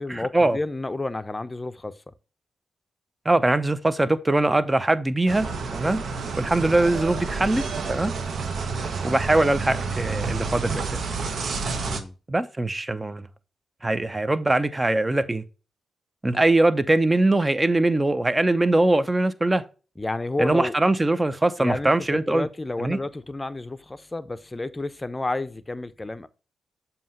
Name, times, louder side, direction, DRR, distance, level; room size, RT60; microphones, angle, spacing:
voice 1, 0.0-2.0 11.8-12.1 20.0-20.7 21.6-26.3, left 2 dB, 25° left, 0.6 m, -31 dB
voice 2, 3.3-6.0 6.4-8.1 9.0-11.0 12.3-13.3 13.8-15.4 16.2-19.6 20.4-22.5 22.8-23.0, right 2 dB, 20° right, 0.6 m, -22 dB
sound 1, 5.3-12.0, right 4 dB, 70° right, 0.8 m, -29 dB
7.2 x 2.8 x 5.3 m
cardioid pair, 55°, 0 cm